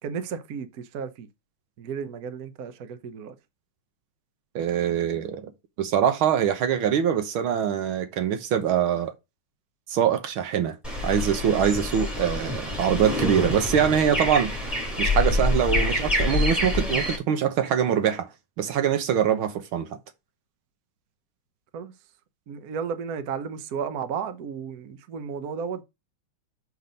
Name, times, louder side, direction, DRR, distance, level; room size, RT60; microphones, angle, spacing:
voice 1, 0.0-1.3 1.8-3.3 21.7-21.9 22.5-25.8, right 6 dB, 55° right, 1.2 m, -33 dB
voice 2, 4.6-5.5 5.8-9.1 9.9-10.8 11.0-14.5 15.0-18.3 18.6-19.9, right 9 dB, 75° right, 1.8 m, -23 dB
sound 1, 10.8-17.2, left 2 dB, ahead, 3.0 m, -26 dB
6.0 x 5.6 x 5.2 m
omnidirectional pair, 2.3 m